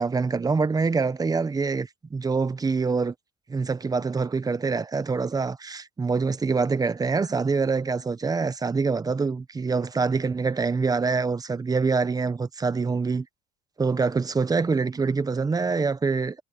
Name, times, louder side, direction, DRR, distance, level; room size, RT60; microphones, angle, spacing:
voice 1, 0.0-3.1 3.5-13.3 13.8-16.4, right 4 dB, 20° right, 1.0 m, -25 dB
cardioid pair, 110°, 17 cm